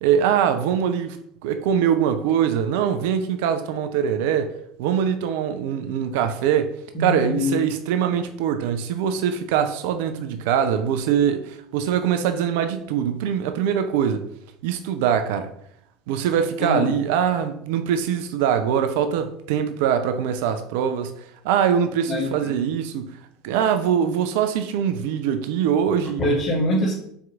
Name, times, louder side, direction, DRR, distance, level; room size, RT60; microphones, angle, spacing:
voice 1, 0.0-1.2 1.4-4.5 4.8-6.7 7.0-14.3 14.6-15.5 16.1-23.2 23.4-26.2, right 8 dB, 60° right, 0.3 m, -23 dB
voice 2, 6.9-7.6 16.6-17.0 22.1-22.5 26.2-26.9, left 1 dB, 40° left, 1.5 m, -24 dB
4.3 x 3.5 x 2.3 m
figure-of-eight pair, 70°, 0 cm